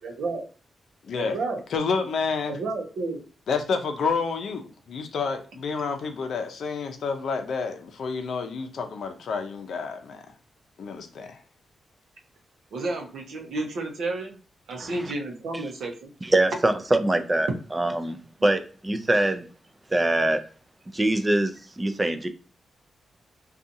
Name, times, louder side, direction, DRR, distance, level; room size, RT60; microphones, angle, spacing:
voice 1, 0.0-0.4 1.1-1.6 2.5-3.2 12.7-14.4 14.7-16.1, right 2 dB, 80° right, 0.7 m, -31 dB
voice 2, 1.0-1.4 1.7-2.6 3.5-10.2 10.8-11.4, left 5 dB, 75° left, 0.5 m, -29 dB
voice 3, 16.2-19.4 19.9-20.4 20.9-22.3, right 1 dB, 15° right, 0.4 m, -24 dB
2.6 x 2.3 x 2.6 m
cardioid pair, 105°, 0 cm